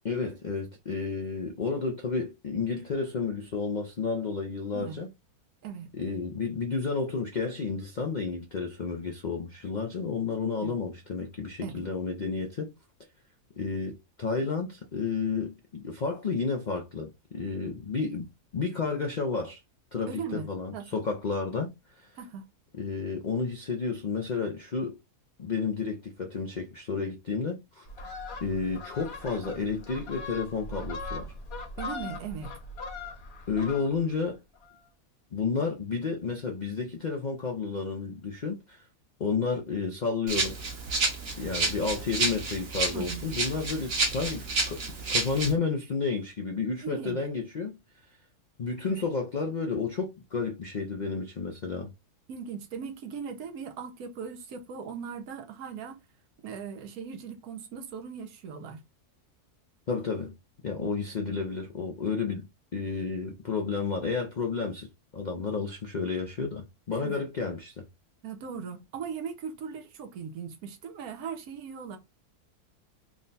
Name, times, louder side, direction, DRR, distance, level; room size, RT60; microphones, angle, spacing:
voice 1, 0.0-5.1 5.9-12.7 13.6-19.6 19.9-22.1 22.7-25.0 25.4-27.9 28.4-31.3 33.5-34.4 35.3-38.8 39.2-40.6 41.4-44.8 45.1-47.8 48.6-51.9 59.9-60.3 60.6-62.5 62.7-64.9 65.1-67.9, left 4 dB, 75° left, 0.4 m, -31 dB
voice 2, 5.6-6.0 10.6-10.7 11.6-11.9 20.1-20.9 22.2-22.4 31.8-32.5 42.9-43.3 46.8-47.2 52.3-56.0 56.4-58.8 66.9-67.2 68.2-72.0, right 6 dB, 70° right, 1.3 m, -39 dB
Fowl, 27.8-34.2 34.5-34.8, left 2 dB, 45° left, 1.1 m, -40 dB
Rattle (instrument), 40.3-45.5, right 3 dB, 45° right, 1.0 m, -30 dB
3.6 x 2.2 x 3.9 m
omnidirectional pair, 1.7 m